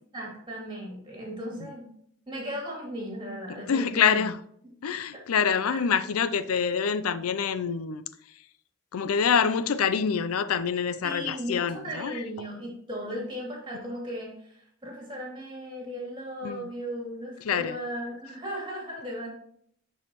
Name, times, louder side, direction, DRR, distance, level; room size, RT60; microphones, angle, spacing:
voice 1, 0.1-1.9 2.3-4.3 5.7-5.8 11.0-19.3, equal, 20° right, 2.6 m, -36 dB
voice 2, 3.7-4.4 4.8-8.0 8.9-12.2 13.1-13.3 16.4-16.7 17.4-17.8, left 6 dB, 85° left, 0.5 m, -26 dB
11.0 x 4.7 x 3.0 m
head